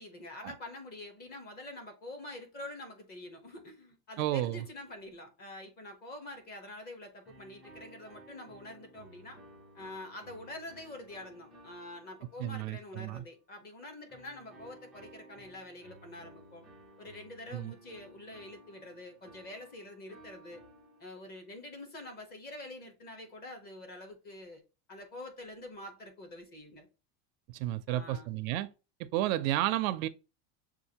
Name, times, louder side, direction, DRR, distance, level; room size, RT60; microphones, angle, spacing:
voice 1, 0.0-9.4 9.7-16.7 17.0-20.6 21.0-24.6 24.9-26.9 27.9-28.3, left 1 dB, 20° left, 1.0 m, -46 dB
voice 2, 4.2-4.6 12.4-13.2 17.5-17.7 27.5-28.7 29.1-30.1, right 14 dB, 70° right, 0.6 m, -31 dB
sound 1, 7.2-13.1 14.1-21.5, right 1 dB, ahead, 0.4 m, -56 dB
6.6 x 2.5 x 2.8 m
cardioid pair, 175°, 42 cm